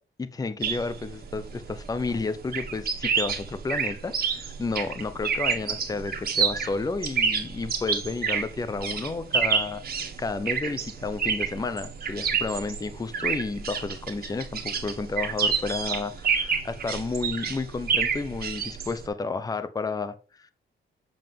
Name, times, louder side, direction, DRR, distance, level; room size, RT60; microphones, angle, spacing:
voice 1, 0.2-20.5, left 3 dB, 20° left, 0.7 m, -31 dB
sound 1, 0.6-19.1, right 6 dB, 50° right, 1.8 m, -29 dB
7.8 x 7.2 x 3.6 m
wide cardioid pair, 150°, 20 cm